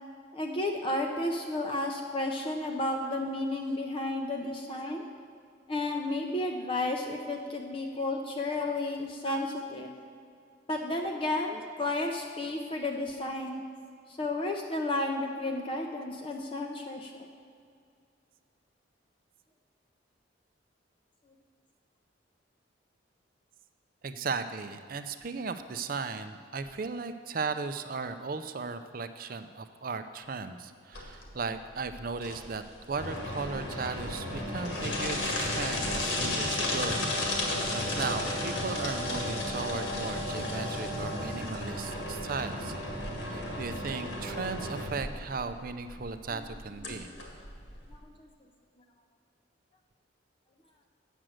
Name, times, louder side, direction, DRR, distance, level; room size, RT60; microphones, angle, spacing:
voice 1, 0.3-5.0 5.7-9.9 10.7-13.6 14.1-17.3 46.3-46.4 46.8-47.1 47.9-48.3, left 2 dB, 30° left, 2 dB, 0.6 m, -32 dB
voice 2, 24.0-32.6 32.9-37.1 37.4-42.7 43.3-47.1, right 4 dB, 45° right, 10 dB, 0.5 m, -36 dB
sound 1, 30.9-48.0, left 1 dB, 75° left, 1.9 m, -34 dB
9.1 x 7.5 x 6.4 m, 2.3 s
head